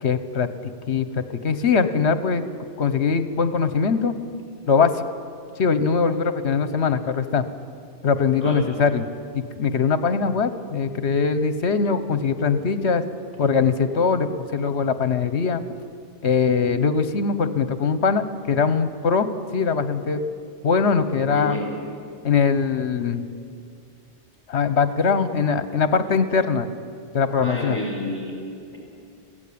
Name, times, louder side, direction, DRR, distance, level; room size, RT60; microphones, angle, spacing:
voice 1, 0.0-2.4 2.8-4.2 4.7-5.0 5.6-7.4 8.0-9.1 9.3-13.0 13.4-15.6 16.2-20.2 20.6-21.6 22.2-23.2 24.5-26.7 27.1-27.8, left 5 dB, 65° left, 11 dB, 1.3 m, -21 dB
voice 2, 21.2-21.7 27.4-28.4, left 1 dB, 30° left, -2 dB, 5.6 m, -29 dB
22.5 x 16.5 x 8.6 m, 2.4 s
omnidirectional pair, 1.2 m